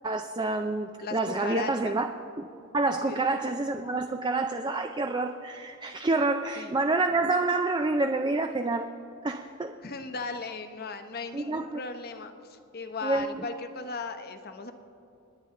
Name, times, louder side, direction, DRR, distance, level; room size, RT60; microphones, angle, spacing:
voice 1, 0.0-2.1 2.4-2.5 2.7-8.9 9.2-9.7 11.3-11.8 13.0-13.5, right 2 dB, 20° right, 6 dB, 0.4 m, -28 dB
voice 2, 1.0-2.0 3.1-3.2 6.6-6.8 9.8-14.7, left 4 dB, 45° left, 7 dB, 0.9 m, -37 dB
26.5 x 10.0 x 3.7 m, 2.7 s
head